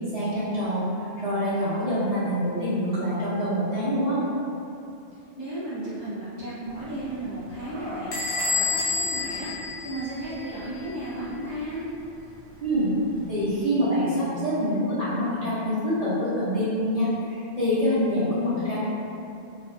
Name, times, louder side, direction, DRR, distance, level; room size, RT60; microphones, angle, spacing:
voice 1, 0.1-0.9 1.2-4.2 12.6-12.9 13.3-18.8, equal, 40° right, -13 dB, 0.7 m, -25 dB
voice 2, 5.4-11.8, right 1 dB, 30° left, -14 dB, 0.6 m, -34 dB
sound 1, 6.7-13.7, equal, 75° right, 1.0 m, -44 dB
Bell / Door, 8.1-10.6, left 4 dB, 80° left, 0.9 m, -28 dB
2.4 x 2.2 x 2.5 m, 2.7 s
omnidirectional pair, 1.1 m